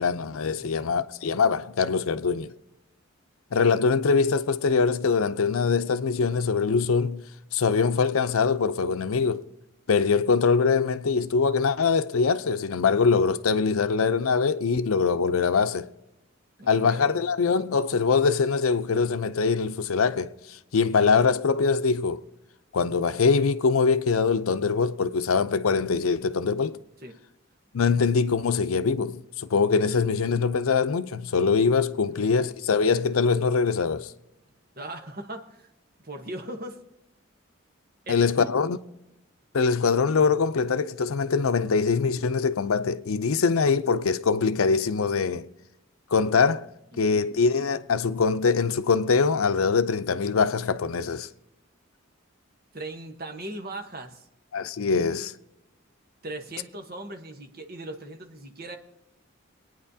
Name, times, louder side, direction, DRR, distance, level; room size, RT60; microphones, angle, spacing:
voice 1, 0.0-2.5 3.5-7.2 7.5-9.5 9.9-15.9 16.7-22.2 22.7-26.8 27.7-34.1 38.1-38.8 39.5-45.5 46.1-46.7 47.0-51.3 54.5-55.3, left 5 dB, 85° left, 0.6 m, -23 dB
voice 2, 0.6-0.9 16.6-17.1 27.0-27.2 32.1-32.3 34.8-35.7 36.0-36.8 38.0-38.5 46.9-47.2 52.7-54.3 56.2-58.8, right 1 dB, 45° right, 1.1 m, -39 dB
24.0 x 9.4 x 2.8 m
head